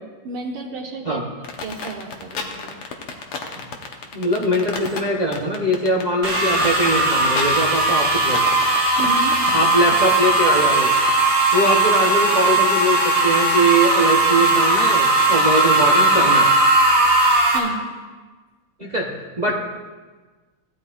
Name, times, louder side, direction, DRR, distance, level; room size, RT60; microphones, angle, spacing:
voice 1, 0.2-1.2 1.6-2.8 9.0-9.4 17.5-17.8, right 3 dB, 90° right, -6 dB, 2.3 m, -31 dB
sound 1, 1.4-11.4, left 5 dB, 80° left, 2.0 m, -32 dB
voice 2, 4.1-8.6 9.5-10.9 11.5-16.5 18.8-19.1 19.4-19.5, right 1 dB, 55° right, -3 dB, 0.4 m, -21 dB
sound 2, 6.2-17.6, right 2 dB, 25° right, 2.4 m, -18 dB
17.0 x 12.5 x 2.5 m, 1.3 s
omnidirectional pair, 2.4 m